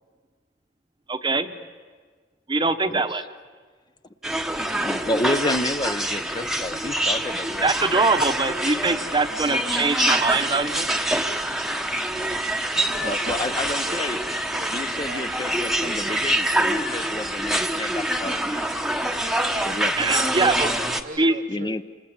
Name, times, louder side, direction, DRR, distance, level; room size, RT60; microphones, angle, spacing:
voice 1, 1.1-1.6 2.5-3.2 7.6-10.9 20.0-20.7 21.2-21.4, right 3 dB, 25° right, 9 dB, 1.0 m, -23 dB
sound 1, 4.2-21.0, right 1 dB, ahead, 1.1 m, -25 dB
voice 2, 4.7-7.6 13.0-14.2 14.7-18.7 19.0-19.2 19.6-19.9 21.5-21.8, left 1 dB, 25° left, 10 dB, 0.8 m, -30 dB
voice 3, 12.7-15.4 15.8-16.5 20.1-21.8, right 3 dB, 45° right, 9 dB, 0.7 m, -40 dB
28.0 x 27.0 x 7.4 m, 1.5 s
head